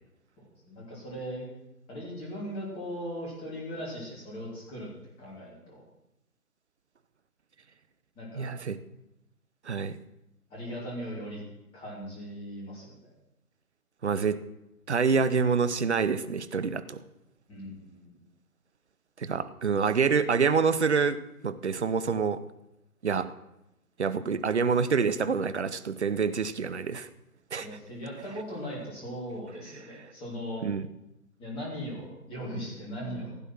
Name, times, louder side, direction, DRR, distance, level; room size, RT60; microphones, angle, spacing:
voice 1, 0.4-1.5 1.9-4.9 5.2-5.8 8.1-8.6 10.5-11.4 11.7-13.1 17.5-18.2 27.6-30.6 31.4-33.3, equal, 10° left, -4 dB, 3.3 m, -39 dB
voice 2, 8.4-8.8 9.6-9.9 14.0-14.4 14.9-17.0 19.2-21.2 21.4-22.4 23.0-23.3 24.0-27.1 27.5-27.7 30.6-30.9, right 5 dB, 45° right, 13 dB, 0.8 m, -26 dB
15.5 x 9.1 x 6.1 m, 0.88 s
figure-of-eight pair, 140°, 46 cm